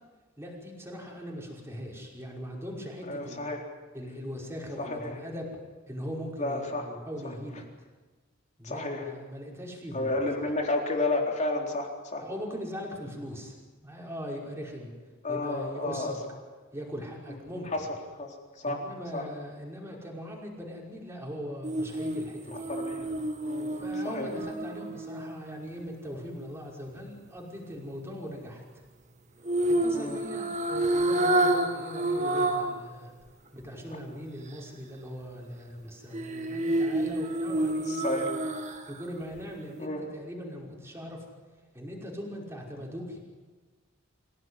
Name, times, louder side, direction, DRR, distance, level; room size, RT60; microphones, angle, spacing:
voice 1, 0.4-3.4 3.9-5.5 5.9-7.6 8.6-10.5 12.2-13.6 13.8-14.9 15.3-16.2 16.7-17.7 18.6-22.8 23.7-28.8 29.7-33.1 33.5-38.4 38.9-41.3 41.7-43.2, equal, 15° right, -2 dB, 5.5 m, -40 dB
voice 2, 3.1-3.6 4.8-5.1 6.4-6.8 8.6-9.0 9.9-12.2 15.2-16.1 18.2-18.8 19.1-19.2 22.5-23.0 23.4-24.3 29.9-30.2 37.9-38.3 39.8-40.0, left 2 dB, 35° left, 1 dB, 4.1 m, -31 dB
sound 1, 21.6-25.9 29.4-32.8 33.2-33.3 36.1-39.0 39.4-39.5, right 1 dB, 35° right, 2.0 m, -29 dB
26.5 x 17.0 x 9.9 m, 1.3 s
head